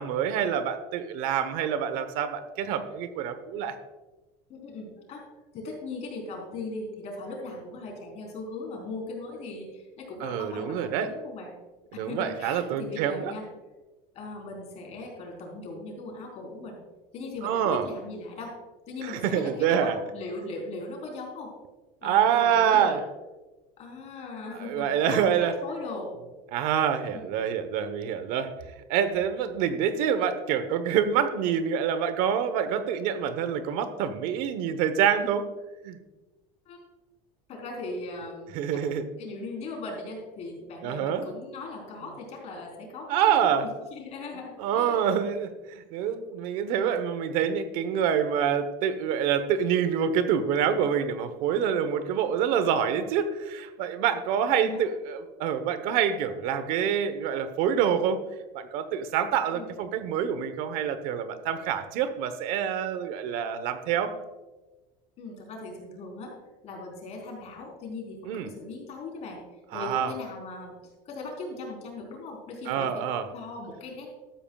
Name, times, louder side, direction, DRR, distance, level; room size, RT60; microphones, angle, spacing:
voice 1, 0.0-3.7 10.2-11.1 11.9-13.3 17.4-17.9 19.0-20.0 22.0-23.0 24.6-25.5 26.5-28.5 28.9-35.5 35.8-36.0 38.5-39.0 40.8-41.2 43.1-43.6 44.6-58.2 58.5-64.1 68.2-68.5 69.7-70.1 72.7-73.3, right 8 dB, 65° right, 10 dB, 1.1 m, -26 dB
voice 2, 4.5-5.2 5.5-11.5 11.9-13.5 14.1-16.8 17.1-18.5 18.9-21.5 22.0-23.0 23.8-25.2 25.6-26.1 27.1-27.3 36.7-36.8 37.5-38.8 39.2-43.5 43.9-45.1 46.7-47.0 54.4-54.8 59.5-59.7 65.2-66.3 66.6-69.4 69.7-73.0 73.3-74.1, left 3 dB, 45° left, 0 dB, 3.9 m, -39 dB
13.0 x 12.5 x 2.4 m, 1.2 s
cardioid pair, 140°, 16 cm